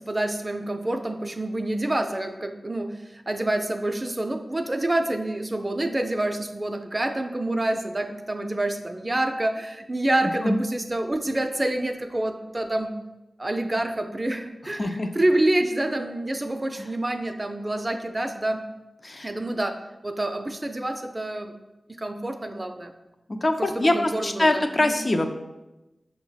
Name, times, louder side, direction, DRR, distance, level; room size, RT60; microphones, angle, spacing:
voice 1, 0.0-13.0 13.4-18.7 19.2-21.5 21.9-22.9 23.6-25.0, right 1 dB, 30° right, 6 dB, 0.4 m, -27 dB
voice 2, 10.2-10.6 14.8-15.1 16.8-16.9 19.0-19.3 23.3-25.3, left 1 dB, 40° left, 5 dB, 0.4 m, -24 dB
6.1 x 2.0 x 3.9 m, 1.0 s
cardioid pair, 55°, 0 cm